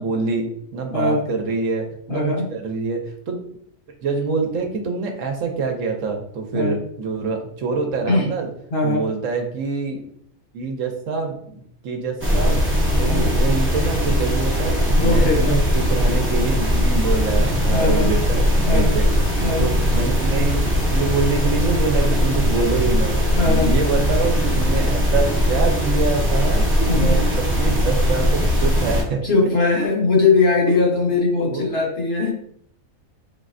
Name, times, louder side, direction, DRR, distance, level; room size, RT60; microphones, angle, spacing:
voice 1, 0.0-2.2 2.5-3.4 4.0-8.5 8.8-10.0 10.5-11.4 11.8-12.6 13.0-19.1 19.4-29.2 30.7-30.8 31.5-31.7, right 4 dB, 70° right, 3 dB, 1.0 m, -25 dB
voice 2, 2.1-2.5 6.5-6.8 8.1-8.3 8.7-9.0 13.0-13.4 14.9-15.6 17.7-18.1 18.7-18.9 19.4-19.7 23.4-23.7 26.9-27.2 29.2-32.3, left 3 dB, 50° left, -2 dB, 1.0 m, -20 dB
sound 1, 12.2-29.0, equal, 15° right, 0.5 m, -19 dB
4.0 x 3.1 x 2.5 m, 0.67 s
omnidirectional pair, 1.4 m